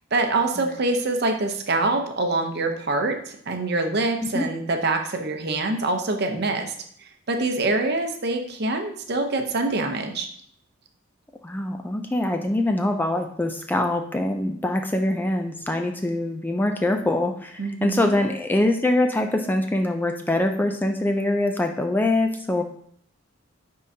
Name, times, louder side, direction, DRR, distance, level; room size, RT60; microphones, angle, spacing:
voice 1, 0.1-6.7 7.3-10.3 17.6-18.2, right 2 dB, 50° right, 4 dB, 0.7 m, -25 dB
voice 2, 11.4-22.6, left 1 dB, 10° left, 4 dB, 0.4 m, -24 dB
9.4 x 3.7 x 2.7 m, 0.64 s
head